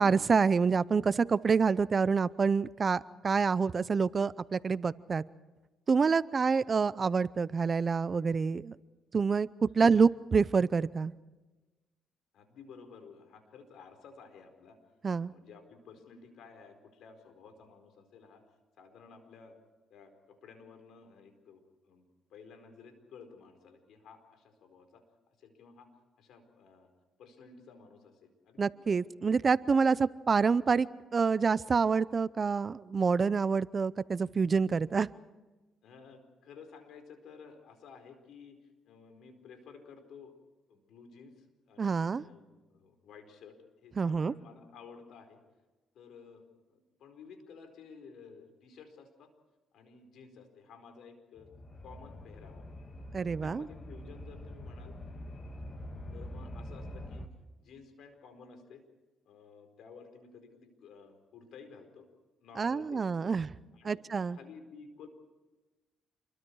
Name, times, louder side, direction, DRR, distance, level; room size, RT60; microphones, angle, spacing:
voice 1, 0.0-5.2 5.9-8.7 9.1-9.5 9.7-11.1 15.0-15.3 28.6-30.9 31.1-35.1 41.8-42.2 44.0-44.3 53.1-53.7 62.6-63.5 63.8-64.4, right 5 dB, 40° right, 18 dB, 0.6 m, -27 dB
voice 2, 12.3-14.8 15.1-18.4 18.8-19.6 19.9-22.0 22.3-25.9 26.2-26.9 27.2-29.0 29.7-29.9 35.8-38.6 38.8-40.4 40.7-45.4 45.9-49.3 49.7-51.5 51.8-52.7 53.2-54.9 56.1-57.3 57.6-58.8 59.3-62.1 62.4-63.3 63.7-64.0 64.3-65.1, left 5 dB, 75° left, 6 dB, 4.7 m, -53 dB
sound 1, 51.4-57.3, left 1 dB, 30° left, 2.2 m, -45 dB
28.5 x 23.5 x 4.8 m, 1.2 s
cardioid pair, 90°, 0 cm